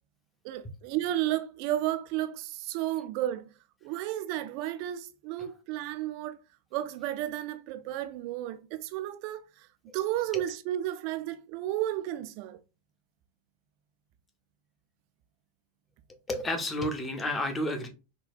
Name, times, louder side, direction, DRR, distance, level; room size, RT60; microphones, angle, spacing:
voice 1, 0.4-3.5 3.8-6.4 6.7-9.7 9.9-12.6, right 13 dB, 45° right, 0.4 m, -32 dB
voice 2, 16.3-17.9, left 1 dB, 15° left, 0.7 m, -31 dB
3.8 x 2.3 x 2.5 m
figure-of-eight pair, 90°, 0 cm